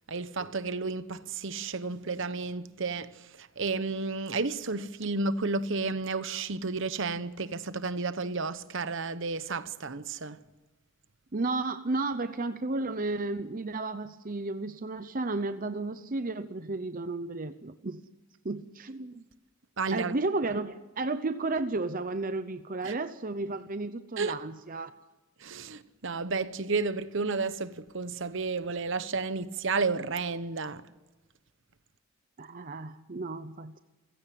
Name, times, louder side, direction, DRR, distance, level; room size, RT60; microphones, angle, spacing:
voice 1, 0.1-10.4 19.8-20.1 22.8-22.9 24.2-24.4 25.4-30.8, right 4 dB, 60° right, 1.0 m, -32 dB
voice 2, 11.3-18.0 18.4-19.3 19.9-24.9 32.4-33.8, right 3 dB, 40° right, 0.8 m, -33 dB
29.0 x 16.5 x 7.7 m
head